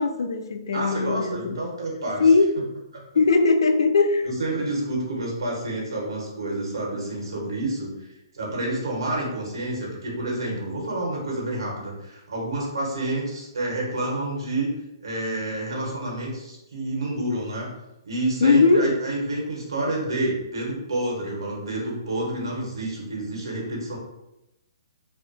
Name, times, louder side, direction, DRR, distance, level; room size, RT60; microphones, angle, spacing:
voice 1, 0.0-1.6 2.2-2.5 3.1-4.3 18.4-18.9, left 4 dB, 75° left, 0.3 m, -19 dB
voice 2, 0.7-2.3 4.2-8.1 8.3-14.7 15.0-17.7 18.0-24.0, right 1 dB, 75° right, 1.0 m, -29 dB
2.3 x 2.1 x 2.5 m
hypercardioid pair, 155°, 2 cm